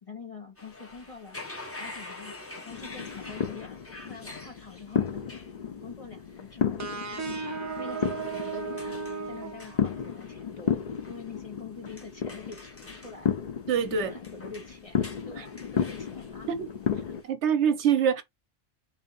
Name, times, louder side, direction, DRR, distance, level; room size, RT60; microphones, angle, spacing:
voice 1, 0.0-1.4 1.8-3.8 4.0-5.4 5.8-6.8 7.8-10.8 11.1-13.3 14.0-16.5, left 4 dB, 30° left, 1.1 m, -45 dB
sound 1, 0.6-17.3, left 2 dB, 15° left, 0.6 m, -47 dB
sound 2, 2.7-17.2, left 7 dB, 55° left, 0.4 m, -33 dB
sound 3, 6.8-10.3, right 5 dB, 30° right, 0.3 m, -35 dB
voice 2, 13.7-14.1 15.4-15.5 16.5-16.7 17.3-18.2, right 7 dB, 70° right, 0.9 m, -25 dB
3.6 x 2.6 x 3.8 m
omnidirectional pair, 1.3 m